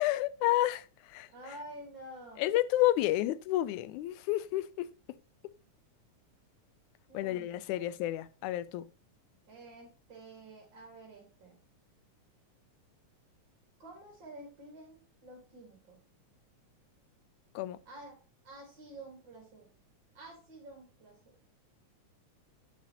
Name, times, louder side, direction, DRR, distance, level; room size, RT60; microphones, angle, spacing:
voice 1, 0.0-1.3 2.4-4.9 7.1-8.9 17.6-17.8, left 15 dB, 85° left, 2.0 m, -30 dB
voice 2, 1.3-2.5 7.1-7.9 9.5-11.6 13.8-16.0 17.9-18.2 18.4-19.7 20.1-21.3, right 1 dB, 40° right, 2.4 m, -50 dB
9.3 x 8.5 x 2.9 m
omnidirectional pair, 3.4 m